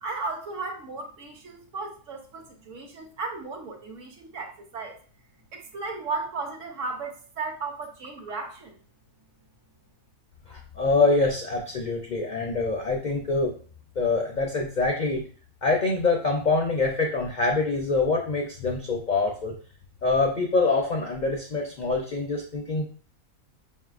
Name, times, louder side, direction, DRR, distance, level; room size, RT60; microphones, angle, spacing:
voice 1, 0.0-5.0 5.5-8.8, right 3 dB, 65° right, 3 dB, 1.0 m, -35 dB
voice 2, 10.5-13.5 14.0-15.2 15.6-19.5 20.0-22.8, left 3 dB, 60° left, 0 dB, 0.4 m, -25 dB
5.4 x 2.7 x 2.4 m, 0.42 s
omnidirectional pair, 1.5 m